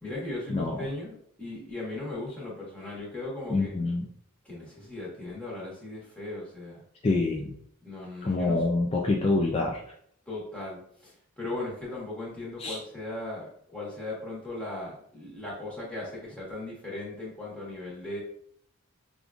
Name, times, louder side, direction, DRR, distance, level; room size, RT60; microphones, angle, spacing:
voice 1, 0.0-3.7 4.4-6.8 7.8-8.6 10.3-18.2, left 2 dB, 5° left, -6 dB, 1.2 m, -38 dB
voice 2, 3.5-4.1 7.0-7.5 8.2-9.8 12.6-12.8, left 2 dB, 25° left, -1 dB, 0.3 m, -26 dB
5.1 x 2.5 x 2.4 m, 0.66 s
head